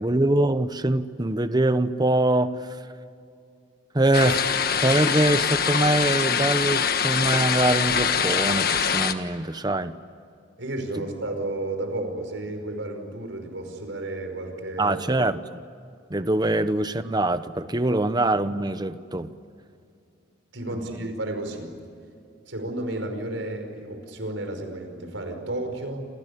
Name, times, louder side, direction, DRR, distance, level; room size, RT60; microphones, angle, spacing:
voice 1, 0.0-2.9 3.9-10.0 11.0-11.1 14.8-15.7 16.1-19.3 20.7-20.8, right 1 dB, 20° right, 12 dB, 1.0 m, -24 dB
sound 1, 4.1-9.1, left 7 dB, 55° left, 1.4 m, -24 dB
voice 2, 10.6-15.0 17.9-18.0 20.5-21.7 22.5-26.0, right 2 dB, 90° right, 5 dB, 5.3 m, -32 dB
28.5 x 28.0 x 7.0 m, 2.4 s
head